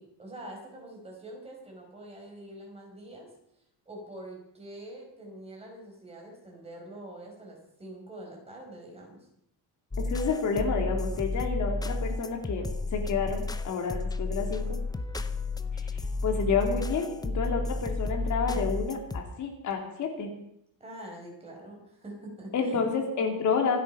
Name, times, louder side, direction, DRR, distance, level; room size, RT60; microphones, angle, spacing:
voice 1, 0.0-3.3 3.5-9.3 18.5-18.6 20.8-22.8, right 1 dB, 15° right, 0 dB, 5.0 m, -45 dB
sound 1, 9.9-19.2, left 2 dB, 10° left, 0.7 m, -32 dB
voice 2, 10.1-12.7 12.9-14.8 15.7-20.3 22.5-23.8, left 5 dB, 50° left, 2 dB, 2.8 m, -29 dB
25.5 x 8.7 x 5.6 m, 0.74 s
cardioid pair, 160°, 38 cm